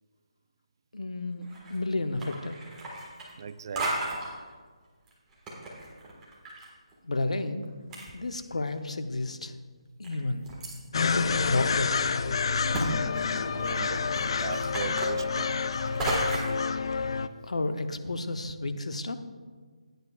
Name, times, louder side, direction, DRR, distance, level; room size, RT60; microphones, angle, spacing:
voice 1, 0.9-2.6 7.0-7.6 8.1-9.5 10.0-10.4 11.0-12.1 17.4-19.2, left 2 dB, 80° left, 8 dB, 0.8 m, -31 dB
sound 1, 1.4-1.8 2.1-3.5 3.8-4.3 5.1-6.7 6.9-7.0 7.6-7.7 7.9-8.7 9.3-9.4 10.0-10.8 11.4-11.5 11.9-12.0 12.7-12.9 13.2-16.6, right 1 dB, 10° right, 1.6 m, -34 dB
voice 2, 3.4-4.2 13.3-15.6, right 6 dB, 40° right, 15 dB, 0.3 m, -40 dB
sound 2, 10.9-17.3, left 5 dB, 50° left, 0.4 m, -28 dB
15.5 x 9.4 x 2.4 m, 1.5 s
figure-of-eight pair, 160°, 3 cm